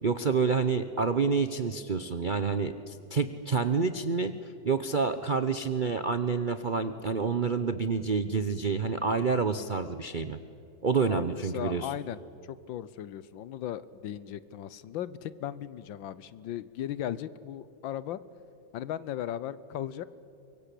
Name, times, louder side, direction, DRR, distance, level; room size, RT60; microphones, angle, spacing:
voice 1, 0.0-10.4 10.8-11.9, right 5 dB, 55° right, 10 dB, 0.5 m, -28 dB
voice 2, 11.1-18.2 18.7-20.0, left 11 dB, 90° left, 17 dB, 1.6 m, -37 dB
24.5 x 23.0 x 8.4 m, 2.6 s
omnidirectional pair, 2.1 m